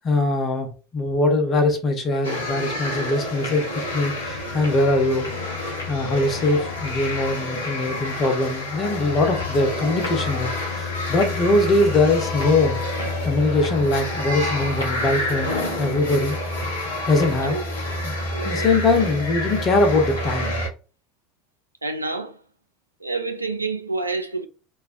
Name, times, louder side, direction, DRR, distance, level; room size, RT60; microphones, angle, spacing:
voice 1, 0.0-5.3 5.9-12.8 13.2-15.5 15.8-16.4 17.1-17.6 18.0-18.1 18.4-20.6, left 2 dB, 35° left, 0.8 m, -22 dB
sound 1, 2.2-20.7, left 2 dB, 80° left, 0.5 m, -28 dB
voice 2, 18.3-19.0 21.8-22.4 23.0-24.5, right 3 dB, 90° right, 0.3 m, -29 dB
2.3 x 2.2 x 2.4 m
figure-of-eight pair, 70°, 0 cm